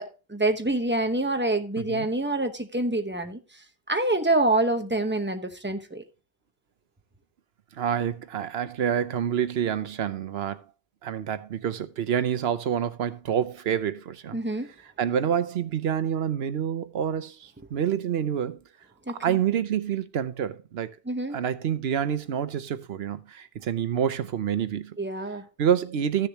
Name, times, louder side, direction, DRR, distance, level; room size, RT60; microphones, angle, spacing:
voice 1, 0.0-3.6 3.9-6.0 14.3-14.7 19.1-19.4 21.1-21.4 25.0-25.5, right 2 dB, 10° right, 0.9 m, -26 dB
voice 2, 1.8-2.1 7.7-10.6 11.0-14.4 14.8-18.6 19.1-21.0 21.3-25.0 25.6-26.3, right 9 dB, 75° right, 1.0 m, -27 dB
14.5 x 6.8 x 2.9 m
omnidirectional pair, 1.1 m